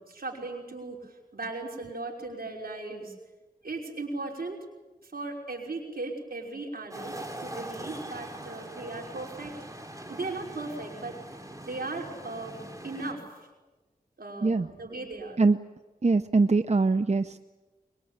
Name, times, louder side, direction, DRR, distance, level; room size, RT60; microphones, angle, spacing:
voice 1, 0.0-3.1 3.6-4.6 5.0-9.6 10.1-11.2 11.6-12.6 12.8-13.5 14.2-14.5 14.8-15.4, right 3 dB, 80° right, 1 dB, 5.3 m, -37 dB
sound 1, 6.9-13.1, right 1 dB, 20° right, 4.5 m, -42 dB
voice 2, 16.0-17.4, right 3 dB, 45° right, 11 dB, 0.7 m, -22 dB
23.5 x 22.5 x 8.8 m, 1.2 s
wide cardioid pair, 45°, 15 cm